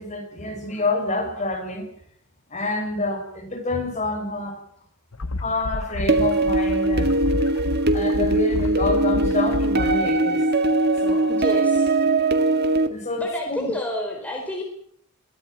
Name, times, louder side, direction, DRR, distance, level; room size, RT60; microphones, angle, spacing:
voice 1, 0.0-1.9 2.5-4.6 5.4-7.2 7.9-10.7 11.0-11.3 12.9-13.7, left 2 dB, 35° left, 3 dB, 6.8 m, -27 dB
sound 1, 5.1-10.0, left 2 dB, 80° left, 1.0 m, -30 dB
sound 2, 6.1-12.9, right 2 dB, 50° right, 2.0 m, -21 dB
voice 2, 11.3-11.9 13.2-14.6, left 1 dB, 5° left, 0 dB, 4.4 m, -29 dB
23.0 x 17.0 x 9.4 m, 0.67 s
head